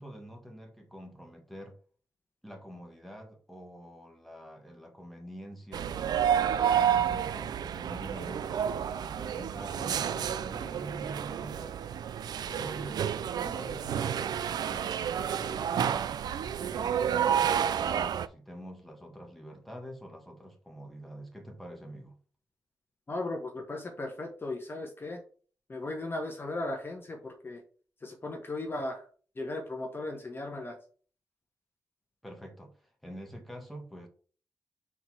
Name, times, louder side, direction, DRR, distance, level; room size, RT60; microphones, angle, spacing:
voice 1, 0.0-1.8 2.4-11.8 12.4-13.0 13.3-14.4 14.7-16.1 16.6-22.2 32.2-34.1, equal, ahead, 1.8 m, -46 dB
sound 1, 5.7-18.3, right 9 dB, 80° right, 0.4 m, -30 dB
voice 2, 23.1-25.2 25.7-27.6 28.0-29.1 29.3-30.8, left 2 dB, 35° left, 1.3 m, -36 dB
4.8 x 3.9 x 5.7 m
cardioid pair, 80°, 7 cm